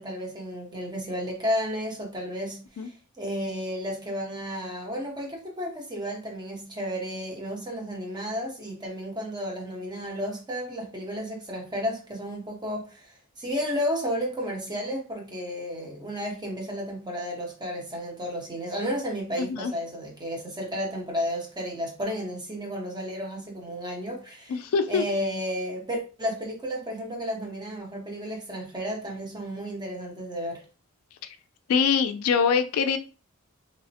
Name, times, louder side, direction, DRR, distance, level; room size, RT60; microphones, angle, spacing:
voice 1, 0.0-24.6 24.9-30.6, equal, 20° right, 0 dB, 0.8 m, -32 dB
voice 2, 19.4-19.7 24.5-25.0 31.7-33.0, left 6 dB, 90° left, 10 dB, 0.3 m, -23 dB
2.9 x 2.0 x 2.7 m, 0.35 s
head